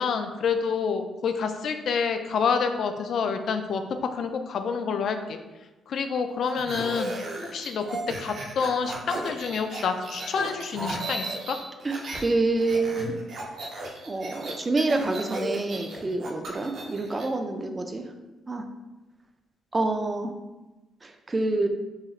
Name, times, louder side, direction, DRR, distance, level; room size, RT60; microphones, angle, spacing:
voice 1, 0.0-3.8 4.1-5.4 5.9-7.1 7.5-7.9 8.2-11.6, left 6 dB, 65° left, 7 dB, 0.4 m, -28 dB
sound 1, 6.4-12.3 12.6-17.3, right 2 dB, 65° right, 0.7 m, -36 dB
voice 2, 11.8-13.1 14.1-18.0 18.5-18.6 19.7-20.3 21.0-21.7, right 2 dB, 25° right, 5 dB, 0.4 m, -27 dB
4.8 x 3.0 x 2.4 m, 1.1 s
cardioid pair, 90°, 0 cm